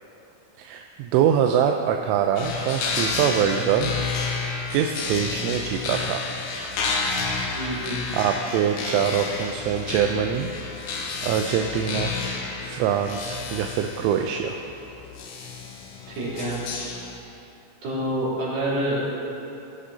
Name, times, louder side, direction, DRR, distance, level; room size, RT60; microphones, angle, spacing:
voice 1, 0.6-3.9 4.7-6.3 7.7-10.5 11.2-12.2 12.6-14.6, right 8 dB, 85° right, 3 dB, 3.1 m, -24 dB
sound 1, 2.4-17.2, left 4 dB, 70° left, 2.8 m, -31 dB
voice 2, 7.4-8.0 16.1-16.6 17.8-19.0, right 1 dB, 50° right, -9 dB, 4.8 m, -27 dB
19.5 x 11.0 x 2.8 m, 2.8 s
omnidirectional pair, 5.6 m